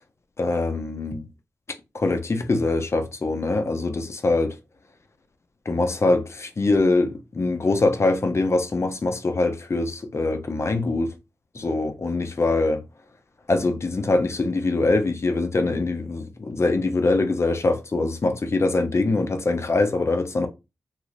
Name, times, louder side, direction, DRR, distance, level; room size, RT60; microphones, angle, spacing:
voice 1, 0.4-1.2 1.9-4.5 5.7-11.1 11.5-12.8 13.5-20.5, left 2 dB, 45° left, 0.8 m, -23 dB
3.0 x 2.5 x 3.3 m
supercardioid pair, 40°, 6 cm